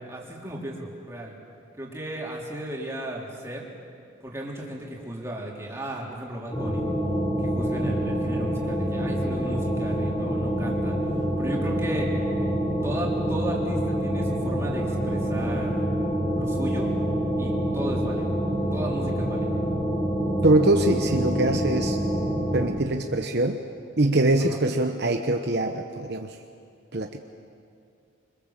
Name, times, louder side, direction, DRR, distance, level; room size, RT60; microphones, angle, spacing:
voice 1, 0.0-1.3 1.8-3.7 4.2-6.8 7.4-11.0 11.4-12.1 12.8-15.7 16.4-16.9 17.4-18.3 18.7-19.5 24.4-24.6, right 1 dB, 15° right, -3 dB, 3.9 m, -35 dB
sound 1, 6.5-22.7, equal, 20° left, 5.3 m, -26 dB
voice 2, 20.4-22.0 22.5-23.6 24.0-26.4 26.9-27.2, right 2 dB, 55° right, 5 dB, 1.0 m, -23 dB
26.5 x 25.5 x 7.5 m, 2.4 s
head